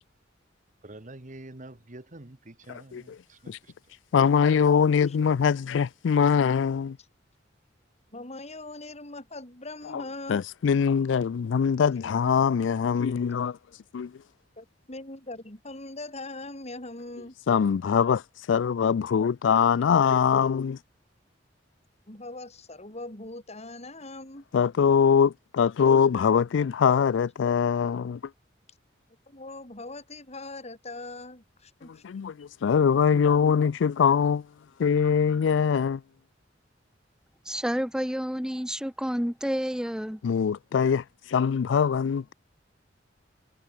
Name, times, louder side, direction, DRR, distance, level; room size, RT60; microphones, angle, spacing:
voice 1, 0.8-3.7, right 2 dB, 45° right, 1.6 m, -46 dB
voice 2, 2.7-3.2 3.5-3.6 4.1-7.0 9.9-10.0 10.3-13.6 13.9-14.1 17.5-18.2 18.5-20.8 24.5-28.2 32.0-34.4 34.8-36.0 40.2-41.0 41.3-42.3, left 6 dB, 80° left, 0.4 m, -23 dB
voice 3, 8.1-10.4 14.6-17.3 22.1-24.4 29.3-32.0, left 2 dB, 35° left, 5.6 m, -41 dB
voice 4, 37.4-40.2, equal, 5° right, 1.4 m, -29 dB
head